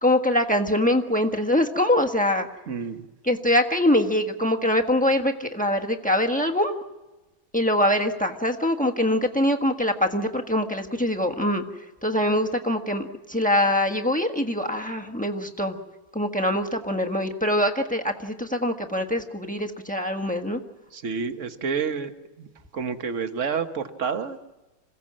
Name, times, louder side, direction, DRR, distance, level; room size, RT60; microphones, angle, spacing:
voice 1, 0.0-2.5 3.3-6.7 7.5-11.6 12.0-15.8 16.1-20.6, left 1 dB, 5° left, 5 dB, 1.1 m, -23 dB
voice 2, 2.7-3.1 20.9-22.1 22.4-22.5 22.7-24.4, right 6 dB, 45° right, 8 dB, 1.4 m, -29 dB
27.0 x 16.5 x 7.5 m, 1.1 s
omnidirectional pair, 2.1 m